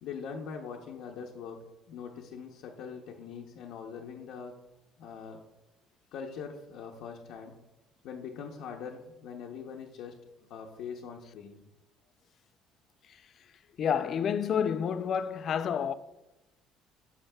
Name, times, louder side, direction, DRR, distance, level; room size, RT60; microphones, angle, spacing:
voice 1, 0.0-4.6 5.0-5.4 6.1-7.5 8.0-10.2 10.5-11.6, left 6 dB, 60° left, 0.7 m, -42 dB
voice 2, 13.8-15.9, left 7 dB, 35° left, 0.3 m, -29 dB
13.0 x 5.7 x 2.2 m
cardioid pair, 170°, 0 cm